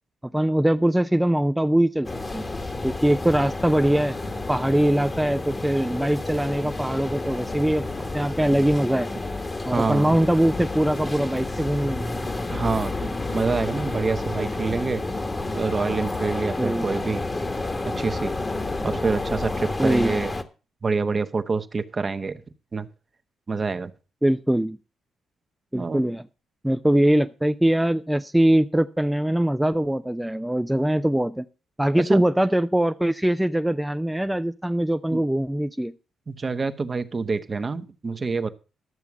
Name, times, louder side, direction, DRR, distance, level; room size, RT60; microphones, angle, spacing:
voice 1, 0.2-2.4 2.8-4.2 4.5-7.9 8.1-9.1 9.7-12.1 16.6-16.9 19.8-20.1 24.2-24.8 25.7-26.2 26.6-31.5 31.8-35.9, right 1 dB, 5° right, 8 dB, 0.5 m, -22 dB
sound 1, 2.0-20.4, left 2 dB, 30° left, 1.4 m, -30 dB
voice 2, 9.7-10.2 12.5-15.0 15.5-17.2 17.8-18.3 18.8-20.3 20.8-22.4 22.7-22.9 23.5-23.9 25.7-26.0 32.0-32.2 35.1-35.2 36.3-38.5, right 4 dB, 40° right, 10 dB, 1.0 m, -27 dB
12.5 x 6.9 x 6.0 m, 0.33 s
hypercardioid pair, 50°, 0 cm